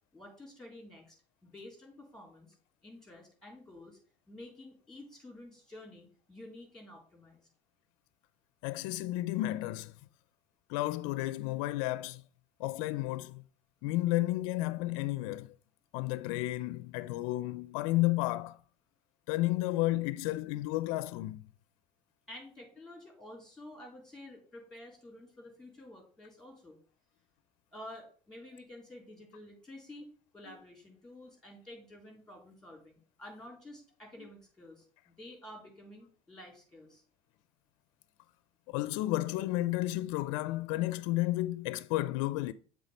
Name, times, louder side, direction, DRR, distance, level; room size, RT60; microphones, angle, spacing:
voice 1, 0.1-1.2 1.4-2.6 2.8-4.0 4.3-7.5 22.3-26.8 27.7-30.1 30.3-37.0, left 1 dB, 5° left, 3.5 m, -50 dB
voice 2, 8.6-9.9 10.7-12.2 12.6-13.4 13.8-15.5 15.9-18.6 19.3-21.4 38.7-42.5, left 17 dB, 80° left, 0.4 m, -32 dB
7.4 x 3.6 x 5.1 m
supercardioid pair, 95°, 17 cm